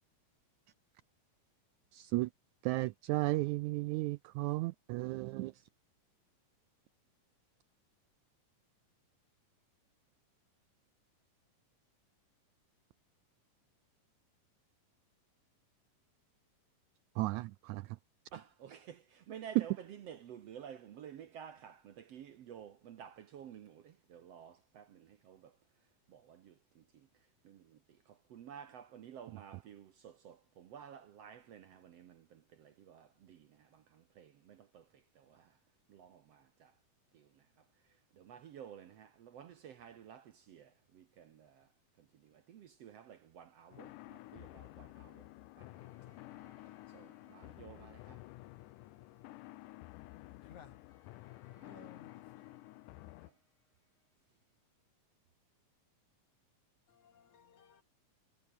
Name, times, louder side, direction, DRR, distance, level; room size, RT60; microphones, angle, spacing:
voice 1, 1.9-2.3 2.6-5.6 17.2-18.0 19.5-19.7 29.3-29.4, right 20 dB, 90° right, 1.6 m, -34 dB
voice 2, 18.3-19.7 20.1-25.5 26.1-26.8 27.4-27.8 28.1-34.9 35.2-35.5 35.9-36.7 37.1-37.3 38.2-41.7 42.2-45.3 45.6-45.7 46.4-46.5 46.9-48.2 51.6-51.9, right 8 dB, 60° right, 1.8 m, -53 dB
sound 1, 43.7-53.3, left 18 dB, 80° left, 2.2 m, -52 dB
sound 2, 45.7-54.5, left 3 dB, 35° left, 7.4 m, -73 dB
voice 3, 50.4-50.8 51.7-52.1 52.4-52.6 56.9-57.8, left 7 dB, 60° left, 3.7 m, -57 dB
omnidirectional pair, 3.9 m